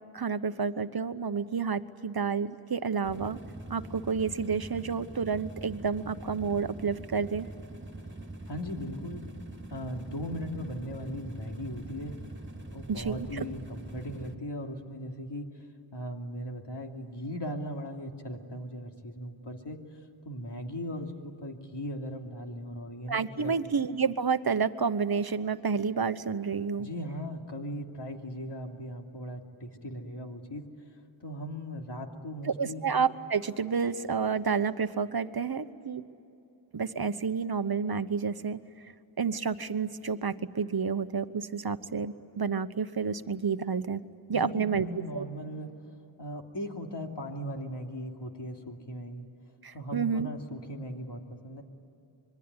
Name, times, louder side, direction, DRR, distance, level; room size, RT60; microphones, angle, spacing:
voice 1, 0.1-3.4 3.7-7.5 12.9-13.5 23.1-26.9 32.5-36.0 36.7-38.6 39.2-44.0 44.3-44.8 45.1-45.2 49.6-50.3, right 5 dB, 50° right, 12 dB, 1.1 m, -30 dB
sound 1, 3.0-14.4, right 2 dB, 20° right, 2.4 m, -43 dB
voice 2, 8.5-9.3 9.7-12.2 12.7-15.5 15.9-20.0 20.2-23.7 26.8-30.7 31.2-32.9 44.3-45.7 46.2-49.3 49.7-51.6, equal, 55° left, 2 dB, 3.0 m, -38 dB
26.0 x 22.5 x 9.7 m, 2.8 s
wide cardioid pair, 60°, 49 cm